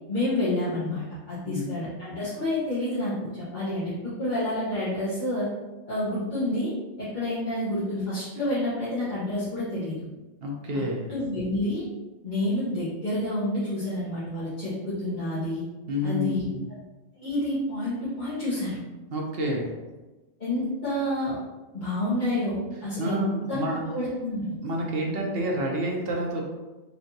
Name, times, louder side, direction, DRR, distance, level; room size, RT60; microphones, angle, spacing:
voice 1, 0.1-5.5 5.9-10.0 11.1-11.8 12.2-15.6 16.0-16.5 17.2-18.8 20.4-21.4 21.7-23.6 23.9-24.6, left 1 dB, 40° left, -13 dB, 1.2 m, -29 dB
voice 2, 10.4-11.1 15.9-16.7 19.1-19.7 23.0-23.8 24.6-26.5, equal, 55° right, -1 dB, 0.9 m, -29 dB
4.5 x 2.7 x 2.7 m, 1.1 s
omnidirectional pair, 1.3 m